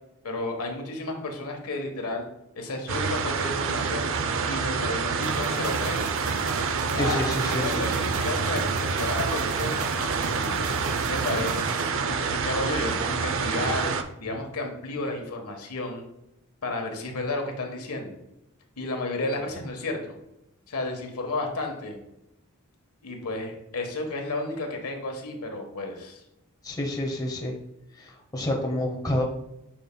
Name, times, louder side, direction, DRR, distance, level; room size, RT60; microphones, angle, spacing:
voice 1, 0.2-2.3 2.6-4.1 4.5-6.1 6.9-9.8 10.4-11.7 12.0-13.9 14.2-16.0 16.6-18.2 18.8-20.0 20.7-22.0 23.0-26.2, left 2 dB, 80° left, 3 dB, 1.3 m, -32 dB
sound 1, 2.9-14.0, right 5 dB, 60° right, 0.5 m, -27 dB
sound 2, 5.2-11.9, right 3 dB, 85° right, 0.8 m, -36 dB
voice 2, 7.0-8.1 26.6-27.5 27.9-29.2, left 1 dB, 15° left, 0 dB, 0.9 m, -29 dB
9.1 x 5.5 x 2.3 m, 0.86 s
head